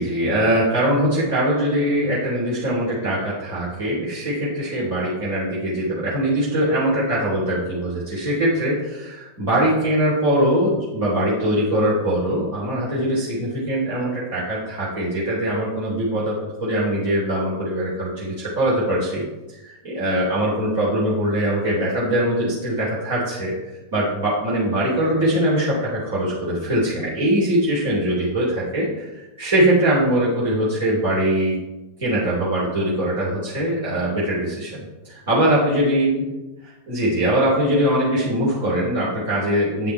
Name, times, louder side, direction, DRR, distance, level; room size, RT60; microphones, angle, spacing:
voice 1, 0.0-19.2 19.6-23.5 23.9-31.6 32.0-36.2 36.9-39.9, right 1 dB, 60° right, -7 dB, 3.1 m, -22 dB
8.8 x 5.8 x 4.5 m, 1.1 s
figure-of-eight pair, 90°, 0 cm